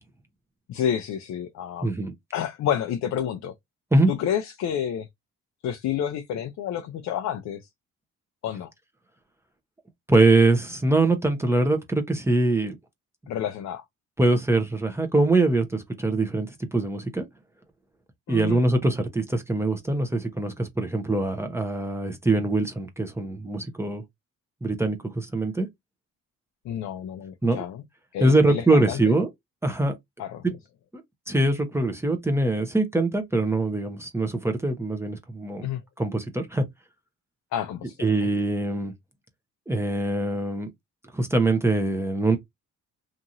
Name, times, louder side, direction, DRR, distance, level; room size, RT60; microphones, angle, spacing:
voice 1, 0.7-1.9 2.3-3.5 4.1-5.1 5.6-7.6 8.4-8.7 13.3-13.8 18.3-18.6 26.6-27.8 28.1-29.0 30.2-30.4 35.6-35.8 37.5-38.3, left 9 dB, 65° left, 0.5 m, -29 dB
voice 2, 1.8-2.1 3.9-4.1 10.1-12.8 14.2-17.2 18.3-24.0 24.6-25.7 27.4-27.6 28.2-29.3 29.6-29.9 31.3-35.7 36.0-36.6 38.0-38.9 39.7-40.7 41.1-42.4, right 2 dB, 10° right, 0.7 m, -23 dB
2.9 x 2.5 x 2.5 m
cardioid pair, 90°, 30 cm